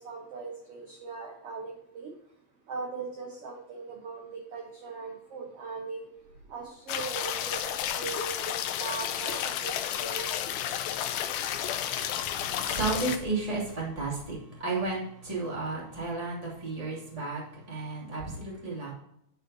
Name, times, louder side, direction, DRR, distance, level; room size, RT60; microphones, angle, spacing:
voice 1, 0.0-2.1 2.7-4.2 4.5-6.1 6.5-8.5 8.8-10.3, right 4 dB, 65° right, -1 dB, 1.5 m, -39 dB
sound 1, 6.9-13.2, left 10 dB, 80° left, 2.4 m, -32 dB
voice 2, 12.2-18.9, right 3 dB, 10° right, -4 dB, 2.0 m, -33 dB
10.0 x 4.5 x 4.1 m, 0.74 s
omnidirectional pair, 4.4 m